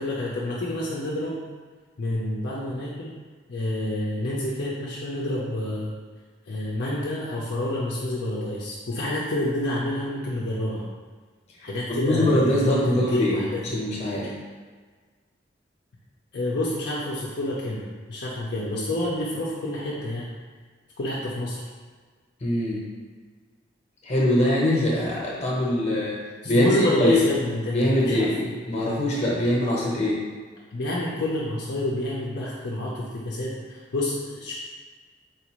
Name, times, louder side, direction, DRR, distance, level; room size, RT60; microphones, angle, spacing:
voice 1, 0.0-1.4 2.0-3.1 3.5-5.9 6.5-10.9 11.6-13.9 16.3-20.4 21.0-21.6 26.4-28.5 30.7-34.5, left 1 dB, 60° left, -6 dB, 0.5 m, -28 dB
voice 2, 12.0-13.4 13.7-14.3 22.4-22.8 24.0-26.2 26.4-27.2 27.7-30.2, left 1 dB, 35° left, -4 dB, 0.9 m, -23 dB
4.2 x 2.5 x 3.0 m, 1.5 s
head